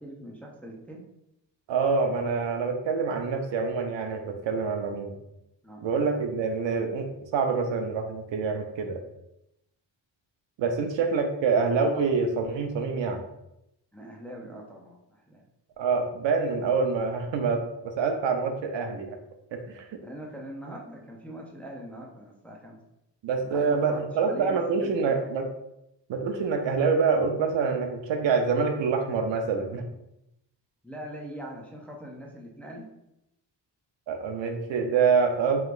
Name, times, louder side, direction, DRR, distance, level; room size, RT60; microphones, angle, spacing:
voice 1, 0.0-1.0 5.6-5.9 13.9-15.4 20.0-22.8 23.4-25.2 30.8-32.9, right 1 dB, 5° left, -1 dB, 0.4 m, -42 dB
voice 2, 1.7-5.1 5.8-9.0 10.6-13.2 15.8-19.2 19.5-20.0 23.2-25.5 26.1-29.8 34.1-35.6, right 5 dB, 85° right, 5 dB, 0.7 m, -26 dB
4.9 x 3.3 x 2.4 m, 0.85 s
wide cardioid pair, 180°, 43 cm